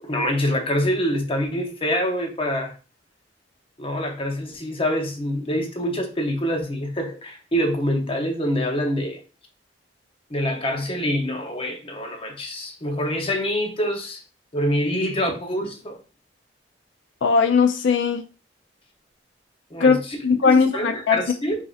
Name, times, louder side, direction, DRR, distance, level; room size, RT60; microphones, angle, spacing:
voice 1, 0.0-2.7 3.8-9.2 10.3-14.2 14.5-16.0 19.7-21.6, equal, 30° left, 0.8 m, -25 dB
voice 2, 17.2-18.2 19.8-19.9 20.2-21.2, left 5 dB, 85° left, 0.4 m, -18 dB
4.9 x 2.8 x 2.4 m
head